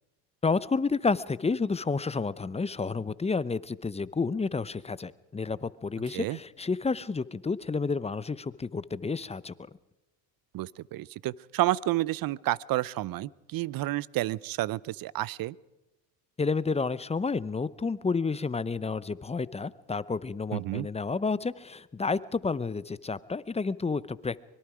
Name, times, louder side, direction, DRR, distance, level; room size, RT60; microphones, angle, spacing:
voice 1, 0.4-9.5 16.4-24.4, left 4 dB, 15° left, 17 dB, 0.7 m, -30 dB
voice 2, 10.5-15.6 20.5-20.9, right 16 dB, 45° right, 23 dB, 0.7 m, -30 dB
24.5 x 22.0 x 5.0 m, 0.99 s
supercardioid pair, 85°, 48 cm